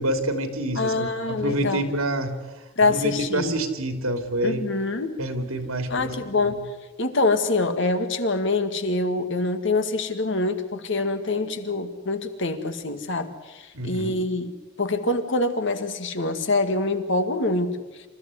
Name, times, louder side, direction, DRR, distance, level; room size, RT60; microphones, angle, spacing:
voice 1, 0.0-2.4 2.8-4.7 5.2-6.6 13.7-14.2, right 1 dB, 85° right, 7 dB, 2.9 m, -27 dB
voice 2, 0.8-1.8 2.8-3.6 4.4-5.2 5.9-6.7 7.0-14.5 14.8-18.0, left 2 dB, 60° left, 8 dB, 2.0 m, -25 dB
27.0 x 14.0 x 9.7 m, 1.2 s
head